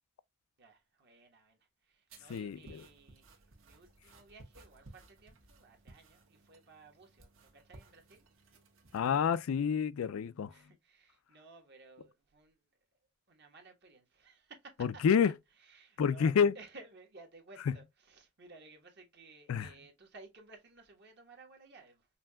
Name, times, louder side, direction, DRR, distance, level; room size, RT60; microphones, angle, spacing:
voice 1, 0.6-8.3 10.5-12.6 13.3-15.2 15.6-22.1, right 3 dB, 50° right, 1.3 m, -57 dB
sound 1, 2.1-9.5, right 2 dB, 70° right, 1.5 m, -59 dB
voice 2, 2.3-2.9 8.9-10.5 14.8-15.3 16.0-16.6 17.7-17.8 19.5-19.7, left 7 dB, 80° left, 0.4 m, -29 dB
5.6 x 2.7 x 2.2 m
head